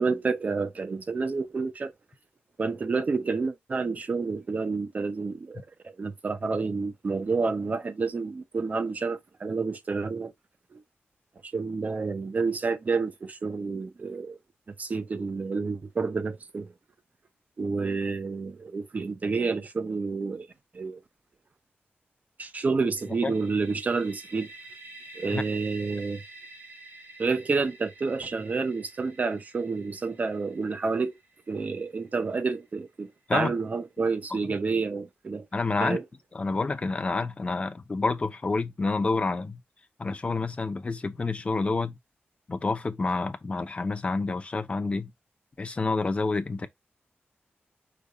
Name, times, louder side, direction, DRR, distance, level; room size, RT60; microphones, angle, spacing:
voice 1, 0.0-1.9 2.6-10.3 10.7-10.8 11.4-14.4 14.7-16.7 17.6-20.5 20.7-21.0 22.4-24.5 25.1-26.2 27.2-31.2 31.5-35.5 35.8-36.0, right 4 dB, 40° right, 0.6 m, -29 dB
sound 1, 23.0-32.7, right 2 dB, 65° right, 1.6 m, -49 dB
voice 2, 35.5-36.0 36.3-39.6 40.0-42.0 42.5-45.1 45.6-46.7, left 3 dB, 30° left, 0.6 m, -28 dB
5.1 x 2.3 x 4.0 m
wide cardioid pair, 175°, 4 cm